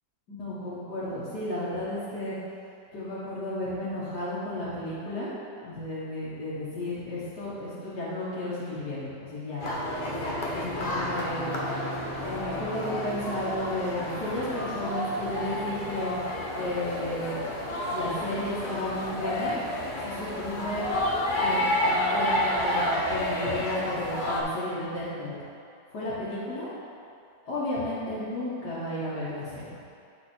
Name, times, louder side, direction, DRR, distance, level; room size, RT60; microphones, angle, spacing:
voice 1, 0.3-2.4 2.9-5.3 5.6-9.7 10.5-11.5 12.1-16.2 16.5-17.4 17.9-19.6 20.0-20.9 21.3-25.3 25.9-26.7 27.5-29.7, left 1 dB, 70° left, -11 dB, 1.9 m, -33 dB
sound 1, 9.6-24.4, left 1 dB, 50° left, 0.6 m, -30 dB
8.8 x 4.0 x 4.3 m, 2.5 s
omnidirectional pair, 1.9 m